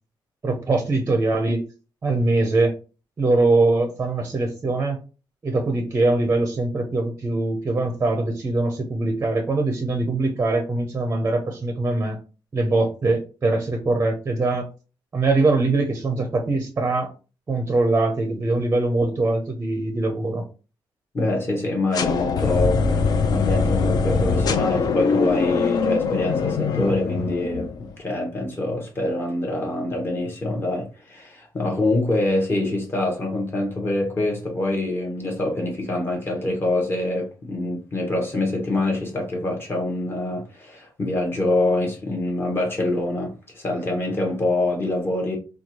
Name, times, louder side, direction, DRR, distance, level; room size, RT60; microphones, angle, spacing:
voice 1, 0.4-1.7 2.0-2.7 3.2-5.0 5.4-12.2 12.5-14.7 15.1-17.1 17.5-20.4, right 2 dB, 25° right, 0.5 m, -22 dB
voice 2, 21.1-45.4, left 2 dB, 30° left, 0.9 m, -25 dB
sound 1, 21.9-27.9, left 4 dB, 55° left, 0.4 m, -22 dB
4.4 x 2.3 x 2.8 m
wide cardioid pair, 165°, 8 cm